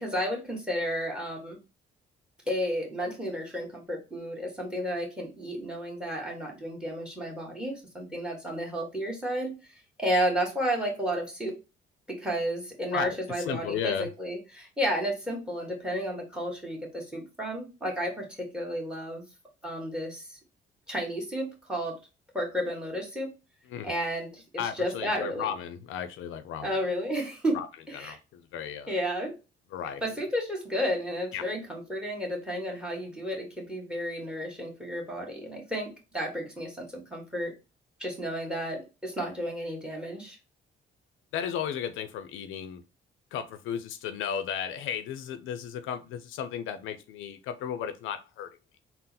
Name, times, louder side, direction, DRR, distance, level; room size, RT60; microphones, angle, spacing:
voice 1, 0.0-1.6 2.5-9.5 10.0-11.5 12.1-19.2 19.6-20.4 20.9-22.0 22.3-23.3 23.8-25.5 26.6-27.6 27.9-28.2 28.9-29.3 30.0-37.5 38.0-40.4, equal, 5° right, 1 dB, 1.5 m, -32 dB
voice 2, 12.9-14.1 23.7-23.9 24.6-26.7 27.5-27.7 27.9-28.9 29.7-30.0 31.3-31.4 41.3-42.8 43.3-48.5, left 8 dB, 85° left, 10 dB, 0.5 m, -34 dB
3.8 x 2.0 x 4.1 m, 0.29 s
cardioid pair, 90°, 20 cm